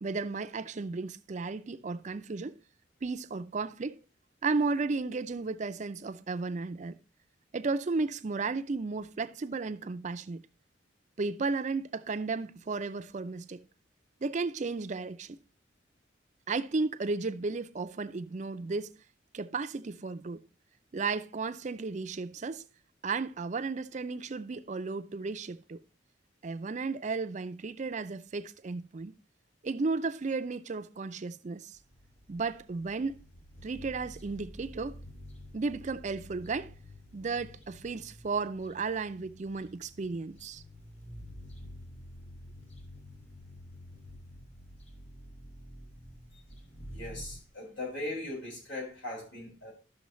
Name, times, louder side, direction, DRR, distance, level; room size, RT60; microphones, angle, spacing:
voice 1, 0.0-2.6 3.0-4.0 4.4-7.0 7.5-10.4 11.2-13.6 14.2-15.4 16.5-19.0 19.3-20.4 20.9-22.6 23.0-25.8 26.4-29.1 29.6-31.8 32.3-33.2 33.6-35.0 35.5-36.7 37.1-40.6, right 4 dB, 40° right, 0.4 m, -34 dB
sound 1, 31.7-47.5, equal, 35° left, 1.5 m, -49 dB
voice 2, 46.9-49.7, left 1 dB, 90° left, 5.6 m, -39 dB
12.5 x 6.4 x 3.1 m
head